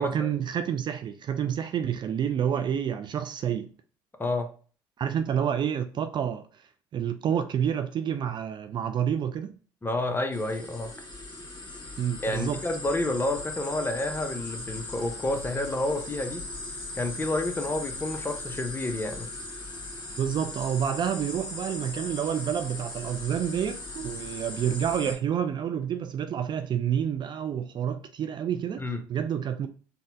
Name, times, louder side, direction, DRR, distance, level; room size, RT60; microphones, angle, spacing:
voice 1, 0.0-3.7 5.0-6.5 6.9-9.5 12.0-12.6 20.2-28.8 29.1-29.7, right 8 dB, 45° right, 0.3 m, -28 dB
voice 2, 9.8-10.9 12.2-16.4 16.9-19.3 28.8-29.0, left 2 dB, 20° left, 0.7 m, -29 dB
sound 1, 10.3-25.1, left 2 dB, 45° left, 1.3 m, -39 dB
4.2 x 2.1 x 2.6 m
hypercardioid pair, 60°, 11 cm